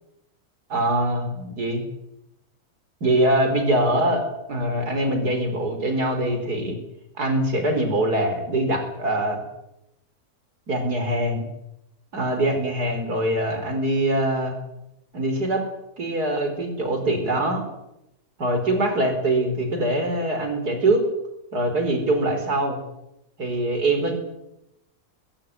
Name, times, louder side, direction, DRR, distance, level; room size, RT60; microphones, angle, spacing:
voice 1, 0.7-1.8 3.0-6.8 7.2-9.4 10.7-11.5 12.1-14.6 15.1-15.6 16.0-17.6 18.4-21.0 21.5-22.8 23.4-24.1, right 1 dB, 75° right, 6 dB, 5.1 m, -23 dB
20.5 x 16.0 x 9.5 m, 0.86 s
omnidirectional pair, 1.7 m